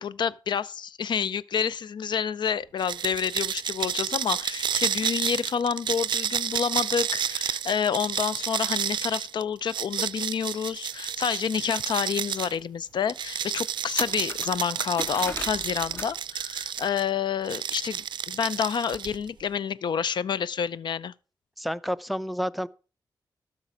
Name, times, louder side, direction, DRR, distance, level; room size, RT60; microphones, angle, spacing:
voice 1, 0.0-21.1, left 7 dB, 70° left, 0.5 m, -29 dB
sound 1, 2.8-12.5 13.1-17.0 17.4-19.3, right 8 dB, 75° right, 0.4 m, -31 dB
sound 2, 11.8-11.9 12.4-12.5 13.1-13.2 13.5-16.2 16.4-16.9, left 1 dB, 30° left, 1.2 m, -37 dB
voice 2, 21.6-22.7, equal, ahead, 0.5 m, -29 dB
12.5 x 6.0 x 5.0 m
cardioid pair, 85°, 8 cm